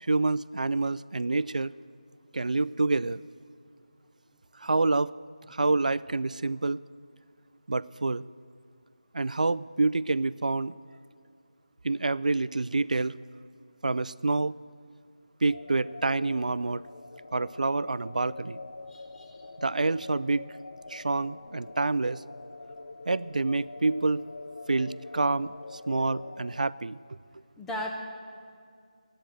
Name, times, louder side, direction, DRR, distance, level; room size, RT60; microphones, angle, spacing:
voice 1, 0.0-1.7 2.3-3.2 4.6-5.1 5.5-6.8 7.7-8.2 9.1-10.8 11.8-13.1 13.8-14.5 15.4-16.8 17.3-18.6 19.6-20.5 20.9-22.2 23.1-24.2 24.7-27.0, right 3 dB, 80° right, 19 dB, 0.3 m, -27 dB
sound 1, 15.5-26.7, left 3 dB, 50° left, 0.6 m, -44 dB
voice 2, 18.9-19.4 27.6-27.9, left 1 dB, 5° left, 0 dB, 0.4 m, -37 dB
10.0 x 8.8 x 9.1 m, 2.2 s
figure-of-eight pair, 170°, 4 cm